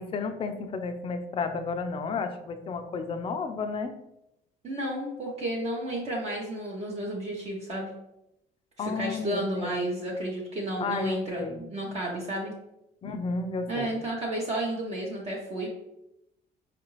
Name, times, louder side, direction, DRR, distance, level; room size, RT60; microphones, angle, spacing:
voice 1, 0.0-4.0 8.8-9.7 10.8-11.6 13.0-13.9, left 4 dB, 35° left, 7 dB, 0.4 m, -32 dB
voice 2, 4.6-7.9 8.8-12.5 13.7-15.7, right 1 dB, 40° right, -3 dB, 0.8 m, -32 dB
4.7 x 2.5 x 3.0 m, 0.84 s
cardioid pair, 110°, 17 cm